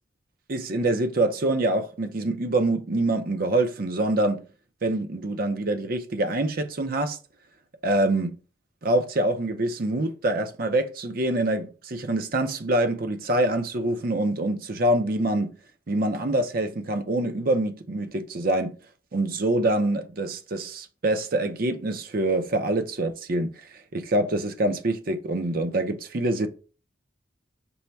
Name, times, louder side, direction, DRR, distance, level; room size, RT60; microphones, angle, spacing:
voice 1, 0.5-4.4 4.8-7.2 7.8-8.4 8.8-15.6 15.9-18.7 19.1-26.5, right 1 dB, 50° right, 0.6 m, -25 dB
5.4 x 2.2 x 4.5 m
head